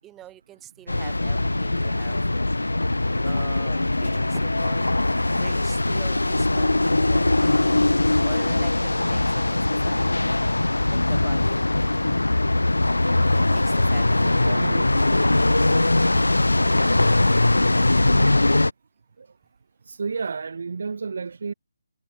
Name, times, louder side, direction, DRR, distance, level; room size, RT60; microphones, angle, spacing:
voice 1, 0.0-2.2 3.2-5.0 5.3-7.8 8.2-10.4 10.9-11.7 13.5-14.8, right 13 dB, 10° right, 7.6 m, -45 dB
sound 1, 0.9-18.7, left 2 dB, 75° left, 0.7 m, -21 dB
voice 2, 14.2-15.3 16.1-16.4 19.2-19.3 19.9-21.5, right 5 dB, 50° right, 2.8 m, -32 dB
figure-of-eight pair, 145°, 0 cm